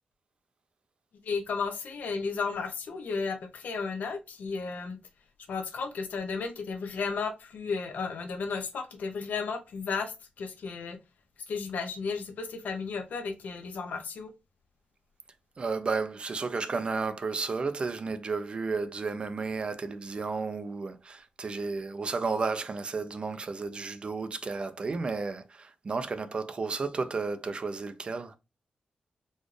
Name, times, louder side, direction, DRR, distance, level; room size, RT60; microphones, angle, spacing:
voice 1, 1.2-5.0 5.5-11.0 11.5-14.3, left 5 dB, 85° left, 0.7 m, -34 dB
voice 2, 15.6-28.3, right 4 dB, 40° right, 0.4 m, -32 dB
4.2 x 2.4 x 3.1 m
wide cardioid pair, 130°, 3 cm